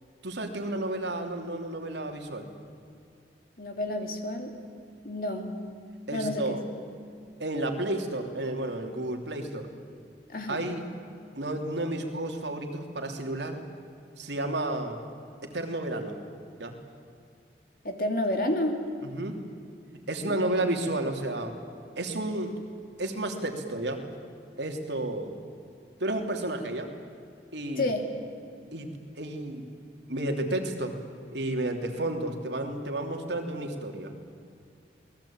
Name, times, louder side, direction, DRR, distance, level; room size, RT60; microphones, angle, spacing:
voice 1, 0.2-2.5 6.1-6.6 7.4-9.7 10.5-10.8 11.3-13.6 14.2-15.0 15.4-16.2 16.6-16.8 19.0-19.4 20.1-21.6 22.0-22.5 23.0-24.0 24.6-25.3 26.0-26.9 27.5-27.9 28.7-29.7 30.1-31.0 31.3-34.1, right 1 dB, 80° right, 3 dB, 3.1 m, -31 dB
voice 2, 3.6-4.5 5.0-5.6 6.1-6.6 10.3-10.6 17.8-18.8 20.3-20.6 27.8-28.0, left 1 dB, 50° left, 4 dB, 3.0 m, -30 dB
28.0 x 20.0 x 8.8 m, 2.4 s
head